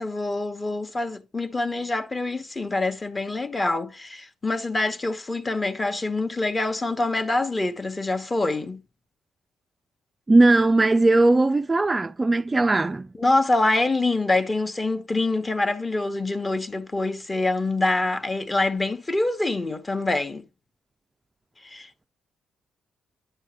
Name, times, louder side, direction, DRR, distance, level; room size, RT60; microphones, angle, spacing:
voice 1, 0.0-8.8 13.2-20.4 21.6-22.1, left 2 dB, 25° left, 1.0 m, -25 dB
voice 2, 10.3-13.1, right 2 dB, 20° right, 0.4 m, -19 dB
10.0 x 6.2 x 3.0 m
cardioid pair, 90°, 0 cm